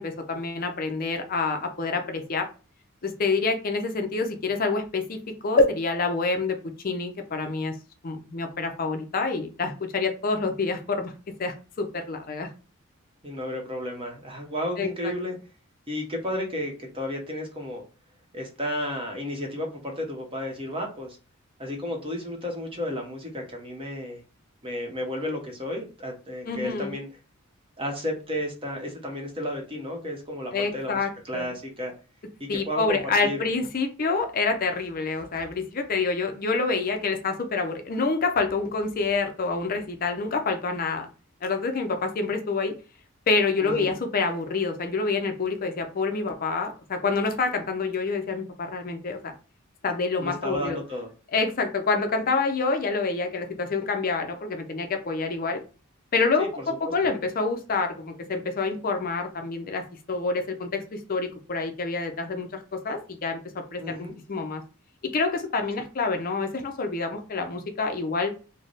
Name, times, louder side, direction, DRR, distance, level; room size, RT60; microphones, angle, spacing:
voice 1, 0.0-2.5 3.0-5.2 5.4-6.6 6.8-7.7 8.0-11.1 11.4-12.5 14.8-15.1 26.5-26.9 30.5-31.5 32.5-41.1 41.4-42.7 43.3-49.3 49.8-50.8 51.3-55.6 56.1-56.5 56.9-63.4 63.7-64.6 65.0-68.3, left 4 dB, 40° left, 5 dB, 0.5 m, -27 dB
voice 2, 13.2-15.4 15.9-17.8 18.3-21.2 21.6-24.2 24.6-27.1 27.8-31.0 31.2-31.9 32.4-33.4 43.6-43.9 50.2-51.1 56.4-56.9 63.8-64.2, left 1 dB, 25° right, 2 dB, 0.8 m, -32 dB
3.2 x 2.1 x 3.9 m, 0.34 s
head